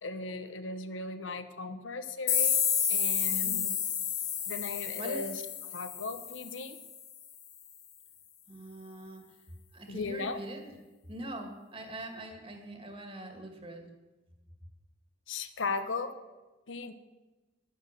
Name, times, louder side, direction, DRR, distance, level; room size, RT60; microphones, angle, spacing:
voice 1, 0.0-2.6 2.9-3.7 4.5-5.4 5.7-6.8 9.9-10.4 15.3-16.1 16.7-16.9, left 3 dB, 85° left, 9 dB, 1.0 m, -37 dB
sound 1, 2.3-6.9, left 8 dB, 45° left, 2.2 m, -30 dB
voice 2, 3.3-3.7 5.0-5.2 8.5-9.3 9.7-10.7 11.1-13.9, right 1 dB, 30° right, 4 dB, 2.2 m, -43 dB
10.5 x 10.5 x 7.5 m, 1.2 s
head